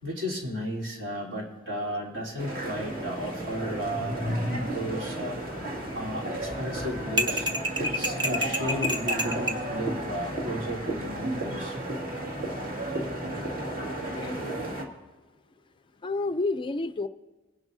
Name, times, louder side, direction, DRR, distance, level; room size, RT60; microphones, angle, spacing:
voice 1, 0.0-4.2 4.5-5.4 5.9-7.5 7.8-11.7, equal, 70° right, -3 dB, 3.5 m, -34 dB
sound 1, 2.4-14.8, right 1 dB, 50° right, 2.0 m, -33 dB
sound 2, 7.2-9.6, equal, 25° right, 0.9 m, -28 dB
voice 2, 14.2-14.5 16.0-17.1, left 3 dB, 25° left, 11 dB, 0.4 m, -30 dB
22.0 x 11.0 x 2.7 m, 1.2 s
head